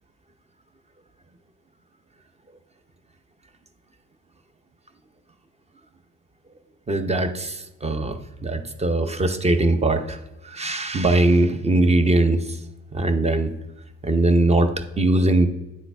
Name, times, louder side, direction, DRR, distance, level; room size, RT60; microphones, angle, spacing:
voice 1, 6.9-8.2 8.4-10.2 10.4-12.5 12.9-13.5 14.0-14.7 15.0-15.5, right 2 dB, 20° right, 9 dB, 0.7 m, -20 dB
9.3 x 3.9 x 3.4 m, 0.97 s
supercardioid pair, 85°, 34 cm